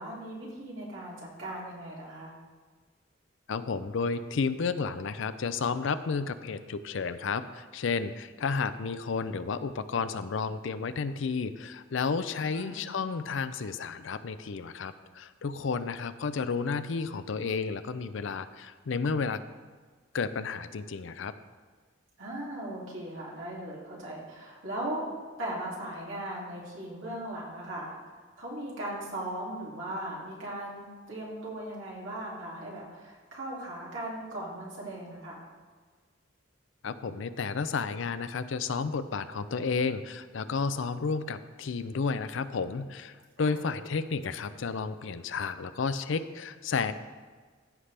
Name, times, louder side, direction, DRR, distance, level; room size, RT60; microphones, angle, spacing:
voice 1, 0.0-2.3 12.5-12.8 22.2-25.1 25.4-35.5 43.4-43.5, right 1 dB, 70° right, -4 dB, 2.6 m, -38 dB
voice 2, 3.5-19.4 20.1-21.3 36.8-46.9, left 5 dB, 70° left, 12 dB, 0.5 m, -32 dB
14.5 x 5.7 x 3.4 m, 1.5 s
head